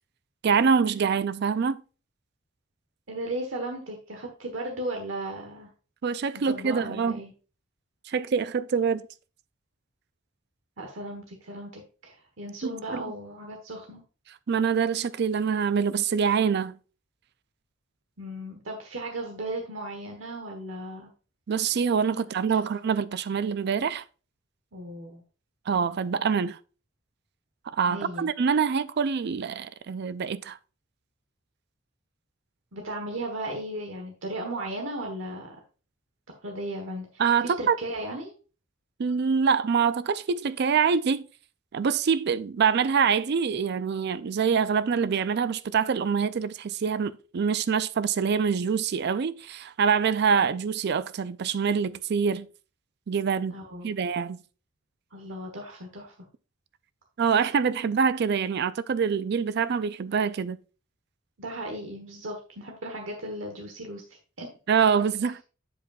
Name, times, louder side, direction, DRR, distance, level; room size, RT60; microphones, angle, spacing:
voice 1, 0.4-1.8 6.0-7.2 8.1-9.0 12.6-13.0 14.5-16.7 21.5-24.0 25.7-26.6 27.7-30.6 37.2-37.8 39.0-41.3 41.7-52.5 53.1-53.6 53.8-54.4 57.2-60.6 64.7-65.4, right 6 dB, 55° right, 0.4 m, -25 dB
voice 2, 3.1-5.7 6.5-7.3 10.8-14.0 18.2-21.1 24.7-25.2 27.9-28.3 32.7-35.6 36.4-38.3 53.5-53.9 55.1-56.1 61.4-64.0 64.4-64.5, right 1 dB, 80° right, 1.2 m, -36 dB
8.0 x 7.4 x 2.4 m
head